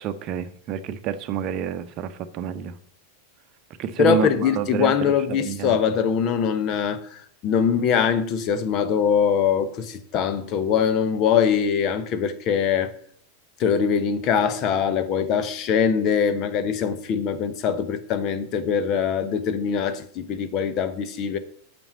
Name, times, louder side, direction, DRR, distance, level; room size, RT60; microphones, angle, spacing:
voice 1, 0.0-2.7 3.8-4.9 5.3-5.8, right 8 dB, 35° right, 0.8 m, -28 dB
voice 2, 4.0-12.9 13.6-21.4, left 7 dB, 35° left, 1.0 m, -22 dB
9.0 x 6.2 x 7.7 m
figure-of-eight pair, 90°, 0 cm